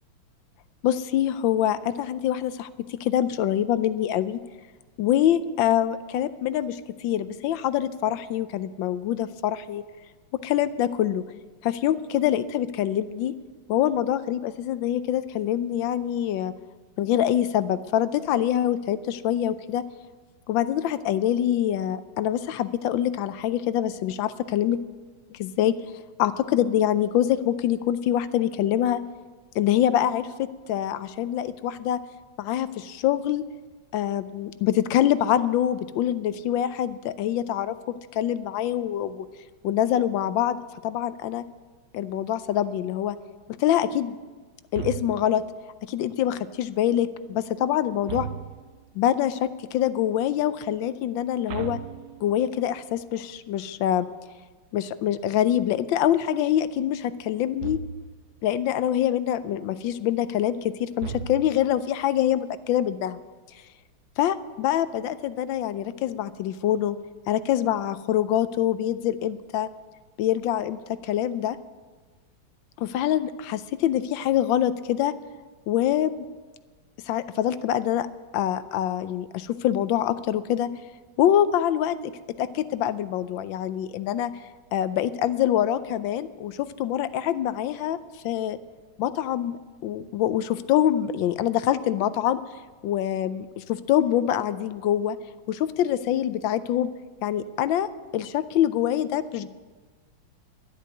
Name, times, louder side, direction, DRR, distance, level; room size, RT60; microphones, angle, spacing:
voice 1, 0.8-4.4 5.0-9.8 10.4-11.2 11.6-13.3 13.7-16.5 17.0-19.8 20.5-24.8 25.3-25.7 26.2-29.0 29.5-32.0 32.4-33.4 33.9-39.2 39.6-40.6 40.8-41.4 41.9-43.2 43.6-44.1 44.7-45.4 45.9-48.3 48.9-51.8 52.2-54.1 54.7-57.8 58.4-63.2 64.2-67.0 67.3-69.7 70.2-71.6 72.8-75.1 75.7-76.3 77.1-78.1 78.3-80.7 81.2-82.1 82.4-84.3 84.7-88.0 88.2-88.6 89.0-92.4 92.8-95.2 95.5-96.9 97.2-99.5, left 11 dB, 75° left, 14 dB, 1.3 m, -25 dB
sound 1, 44.7-45.5 48.0-48.9 51.5-52.6 57.6-58.3 61.0-61.8, right 7 dB, 85° right, 1.5 m, -36 dB
12.0 x 8.4 x 9.5 m, 1.3 s
omnidirectional pair, 2.3 m